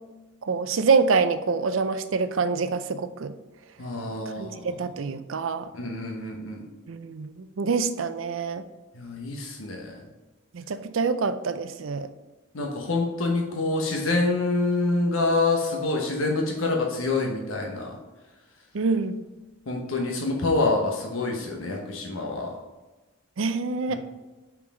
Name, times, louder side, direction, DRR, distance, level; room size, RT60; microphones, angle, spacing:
voice 1, 0.4-3.3 4.4-5.7 6.9-8.6 10.5-12.1 18.7-19.2 23.4-24.0, right 4 dB, 75° right, 11 dB, 0.5 m, -26 dB
voice 2, 3.8-4.7 5.7-6.7 8.9-10.0 12.5-17.9 19.7-22.5 23.9-24.0, left 2 dB, 85° left, 0 dB, 1.1 m, -26 dB
5.7 x 4.6 x 6.0 m, 1.2 s
head